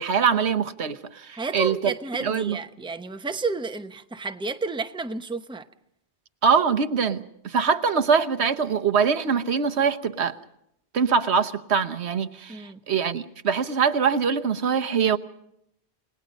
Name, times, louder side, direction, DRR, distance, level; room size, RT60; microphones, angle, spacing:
voice 1, 0.0-1.9 2.2-2.6 6.4-10.4 10.9-15.2, right 6 dB, 80° right, 8 dB, 1.3 m, -23 dB
voice 2, 1.3-5.7 12.5-12.8, right 3 dB, 5° right, 8 dB, 0.8 m, -31 dB
30.0 x 19.0 x 5.3 m, 0.75 s
omnidirectional pair, 1.1 m